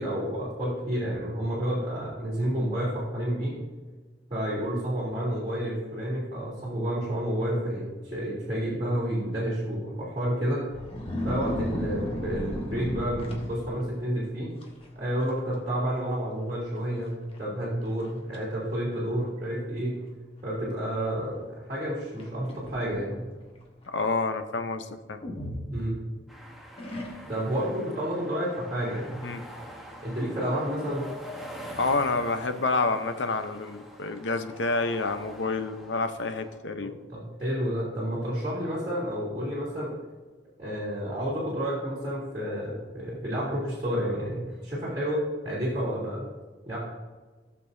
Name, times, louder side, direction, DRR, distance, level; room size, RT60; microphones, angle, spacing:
voice 1, 0.0-3.6 4.3-10.6 11.2-14.5 15.0-17.1 17.4-20.0 20.4-23.3 25.7-26.0 27.3-29.2 30.0-31.0 36.8-39.9 40.6-46.3 46.6-46.8, equal, 25° right, -10 dB, 2.9 m, -30 dB
sound 1, 10.7-14.0 14.6-14.9 15.2-15.6 15.9-16.0 16.8-16.9 17.4-17.5 18.0-18.4 19.2-19.3 22.2-23.2 25.2-26.3 26.8-27.5, equal, 30° left, 1.4 m, -35 dB
voice 2, 23.9-25.2 29.2-29.4 31.8-37.0, left 3 dB, 80° left, 9 dB, 0.7 m, -28 dB
sound 2, 26.3-36.6, equal, ahead, 1.1 m, -45 dB
16.5 x 6.8 x 2.7 m, 1.4 s
head